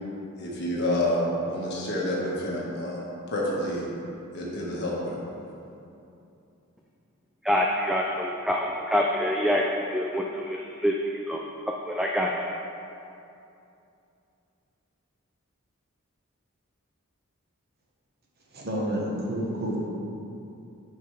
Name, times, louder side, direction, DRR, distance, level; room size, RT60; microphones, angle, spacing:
voice 1, 0.4-3.9 4.3-5.2, left 1 dB, 50° left, -5 dB, 1.6 m, -28 dB
voice 2, 7.4-12.5, equal, ahead, -1 dB, 0.3 m, -26 dB
voice 3, 18.5-19.9, equal, 50° right, -3 dB, 1.2 m, -29 dB
10.0 x 5.6 x 3.3 m, 2.7 s
head